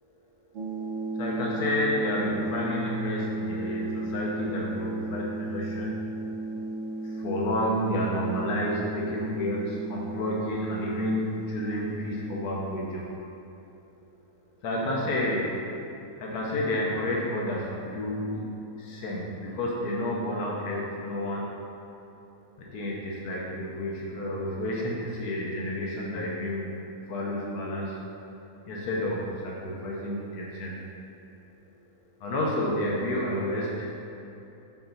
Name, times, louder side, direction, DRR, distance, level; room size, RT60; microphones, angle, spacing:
sound 1, 0.5-12.5, right 2 dB, 65° right, 1.0 m, -34 dB
voice 1, 1.2-6.0 7.0-13.1 14.6-15.6 16.2-18.5 18.8-21.5 22.6-26.8 27.1-28.0 28.6-30.8 32.2-33.9, left 1 dB, 85° left, -3 dB, 1.4 m, -30 dB
6.8 x 3.9 x 5.5 m, 2.9 s
omnidirectional pair, 1.6 m